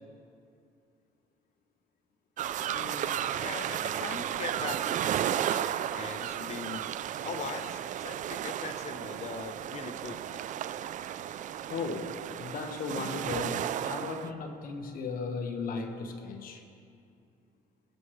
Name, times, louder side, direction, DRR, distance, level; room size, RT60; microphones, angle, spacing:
sound 1, 2.4-14.3, right 11 dB, 50° right, 0.4 m, -34 dB
voice 1, 2.7-6.8 7.2-10.6, left 6 dB, 40° left, 8 dB, 0.8 m, -41 dB
voice 2, 11.7-16.6, left 4 dB, 55° left, 4 dB, 1.3 m, -36 dB
21.5 x 7.8 x 3.2 m, 2.4 s
cardioid pair, 110°, 17 cm